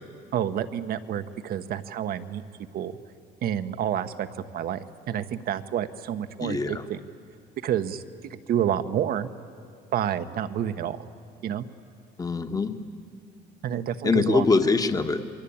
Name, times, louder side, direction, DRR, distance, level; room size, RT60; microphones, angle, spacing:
voice 1, 0.3-2.4 2.7-2.9 3.4-4.3 4.5-7.0 7.6-9.3 9.9-11.1 11.4-11.6 13.6-14.5, right 10 dB, 65° right, 10 dB, 1.2 m, -29 dB
voice 2, 6.4-6.8 12.2-12.7 14.0-15.2, left 4 dB, 20° left, 7 dB, 1.3 m, -23 dB
29.0 x 22.5 x 8.8 m, 2.4 s
cardioid pair, 110°, 17 cm